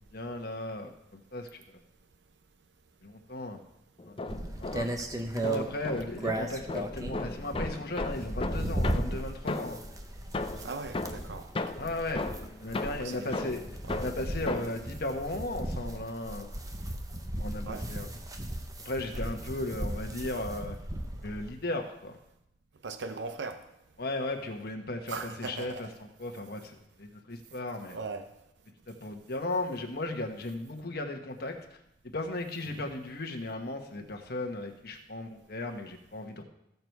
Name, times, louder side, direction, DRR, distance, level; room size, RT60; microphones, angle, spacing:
voice 1, 0.1-1.8 3.0-3.6 4.0-4.2 4.6-5.0 5.3-9.8 11.8-12.2 12.6-13.6 14.0-16.6 17.4-18.1 18.8-20.8 21.2-22.2 24.0-28.0 28.9-31.8 32.0-36.4, left 2 dB, 60° left, 3 dB, 1.3 m, -36 dB
sound 1, 4.0-5.1 5.4-9.9 10.3-14.9, left 2 dB, 30° left, 0.5 m, -36 dB
sound 2, 4.3-21.5, right 1 dB, 20° right, 0.9 m, -36 dB
voice 2, 10.6-11.5 12.3-12.4 13.0-13.5 13.9-14.0 17.7-17.9 19.1-19.3 22.8-23.6 25.1-25.9 27.9-28.3 32.7-32.9, right 4 dB, 80° right, 8 dB, 0.8 m, -39 dB
15.0 x 6.9 x 4.6 m, 0.84 s
head